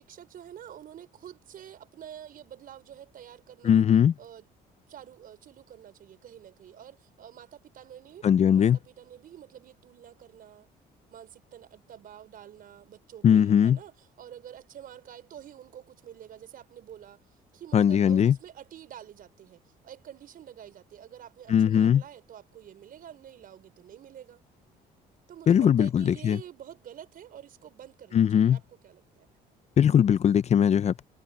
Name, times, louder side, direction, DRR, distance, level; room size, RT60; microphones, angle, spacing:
voice 1, 0.0-3.8 4.2-4.4 4.9-10.7 11.1-24.4 25.3-29.3, right 10 dB, 55° right, 5.4 m, -48 dB
voice 2, 3.6-4.1 8.2-8.8 13.2-13.8 17.7-18.4 21.5-22.0 25.5-26.4 28.1-28.6 29.8-31.1, left 8 dB, 40° left, 0.6 m, -20 dB
cardioid pair, 110°, 17 cm